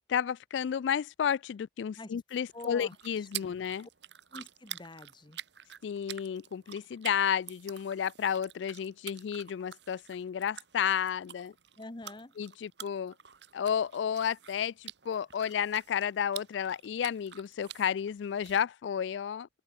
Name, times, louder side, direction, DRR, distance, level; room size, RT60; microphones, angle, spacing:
voice 1, 0.1-3.9 5.8-11.5 12.4-13.1 13.5-19.5, left 8 dB, 80° left, 0.3 m, -32 dB
sound 1, 2.4-18.6, right 11 dB, 70° right, 2.0 m, -48 dB
voice 2, 2.5-3.6 4.3-5.4 11.8-12.3, left 2 dB, 25° left, 1.0 m, -46 dB
open air
head